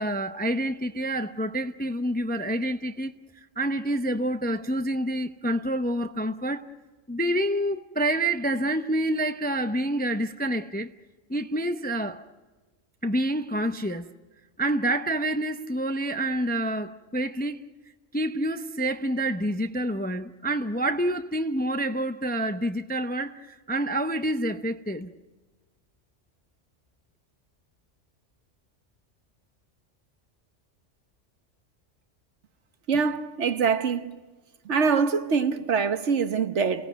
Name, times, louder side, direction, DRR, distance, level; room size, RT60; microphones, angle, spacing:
voice 1, 0.0-3.1 3.6-6.7 7.1-10.9 11.3-12.3 13.0-14.1 14.6-17.6 18.1-25.1, right 1 dB, 10° left, 0.5 m, -27 dB
voice 2, 32.9-34.1 34.7-36.9, right 5 dB, 70° right, 1.4 m, -24 dB
28.5 x 17.5 x 9.3 m
omnidirectional pair, 1.3 m